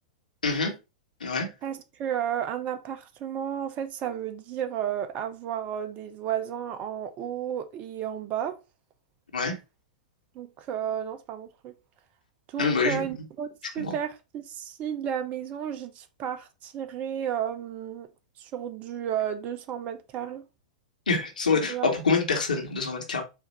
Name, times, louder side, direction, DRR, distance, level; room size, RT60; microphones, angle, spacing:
voice 1, 0.4-0.7 1.2-1.5 9.3-9.5 12.6-13.0 13.8-13.9 21.1-23.2, left 4 dB, 85° left, 1.4 m, -25 dB
voice 2, 1.6-8.6 10.3-11.7 12.5-13.5 13.7-18.1 18.4-20.5 21.7-21.9, right 9 dB, 35° right, 0.6 m, -32 dB
4.6 x 2.6 x 4.1 m
hypercardioid pair, 105°, 4 cm